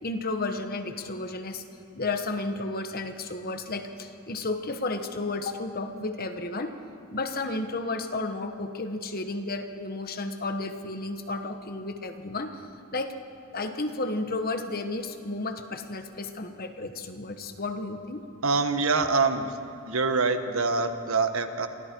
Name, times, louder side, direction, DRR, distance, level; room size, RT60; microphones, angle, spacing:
voice 1, 0.0-1.6 1.9-6.7 7.1-12.6 12.9-13.1 13.5-18.2, left 2 dB, 45° left, 7 dB, 1.4 m, -32 dB
voice 2, 18.4-19.5 19.8-21.7, right 4 dB, 75° right, 8 dB, 1.4 m, -25 dB
29.5 x 24.5 x 4.7 m, 2.5 s
head